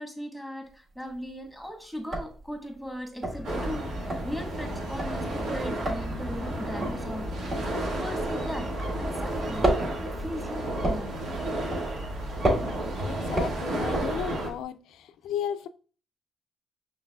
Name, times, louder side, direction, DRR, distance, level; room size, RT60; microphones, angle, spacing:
voice 1, 0.0-9.8 10.0-11.2, equal, ahead, 1.2 m, -38 dB
sound 1, 0.7-1.3 1.6-1.7 2.0-9.0 9.3-14.6, right 1 dB, 35° right, 1.7 m, -31 dB
sound 2, 3.2-10.3, left 2 dB, 20° left, 0.6 m, -40 dB
sound 3, 3.4-14.5, right 1 dB, 85° right, 1.4 m, -32 dB
voice 2, 13.0-15.7, left 9 dB, 85° left, 0.3 m, -34 dB
5.7 x 3.2 x 2.2 m
cardioid pair, 90°, 0 cm